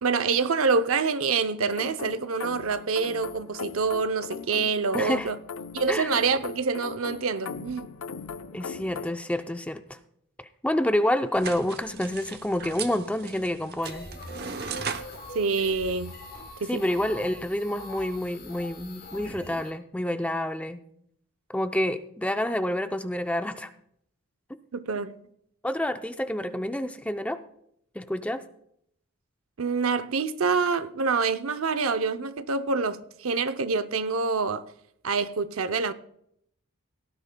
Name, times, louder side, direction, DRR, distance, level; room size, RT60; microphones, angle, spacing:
voice 1, 0.0-5.4 5.7-7.9 15.3-16.2 16.6-16.8 24.7-25.2 29.6-34.7 35.0-35.9, right 4 dB, 75° right, 0.6 m, -26 dB
sound 1, 1.7-9.1, left 5 dB, 75° left, 0.6 m, -39 dB
voice 2, 4.9-5.3 5.9-6.1 8.5-10.0 10.6-14.1 16.7-20.8 21.5-23.7 25.6-27.4 28.0-28.4, left 1 dB, 5° left, 0.5 m, -28 dB
sound 2, 11.3-16.6, right 6 dB, 50° right, 0.9 m, -38 dB
sound 3, 13.8-19.7, left 2 dB, 45° left, 3.9 m, -43 dB
17.5 x 13.5 x 2.3 m
head